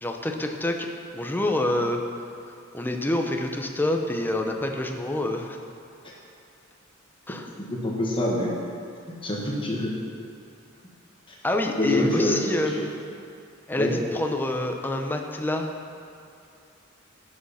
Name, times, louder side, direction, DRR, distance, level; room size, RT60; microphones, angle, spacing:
voice 1, 0.0-0.9 1.1-2.0 2.7-5.6 7.3-7.5 11.4-12.9 13.7-15.7, left 1 dB, 10° left, 3 dB, 0.7 m, -27 dB
voice 2, 7.7-8.5 9.2-9.9 11.8-12.4 12.8-12.9 13.8-13.9, left 1 dB, 25° left, -3 dB, 1.3 m, -25 dB
11.0 x 6.5 x 5.6 m, 2.6 s
head